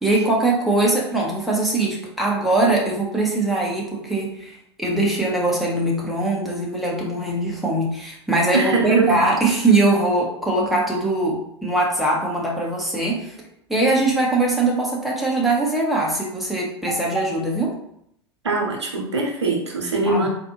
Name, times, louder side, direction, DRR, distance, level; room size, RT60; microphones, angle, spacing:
voice 1, 0.0-13.3 13.7-17.7 20.0-20.3, right 2 dB, ahead, -4 dB, 1.1 m, -21 dB
voice 2, 8.5-9.2 18.4-20.3, right 3 dB, 75° right, 0 dB, 1.0 m, -21 dB
4.0 x 2.6 x 2.9 m, 0.73 s
figure-of-eight pair, 85°, 15 cm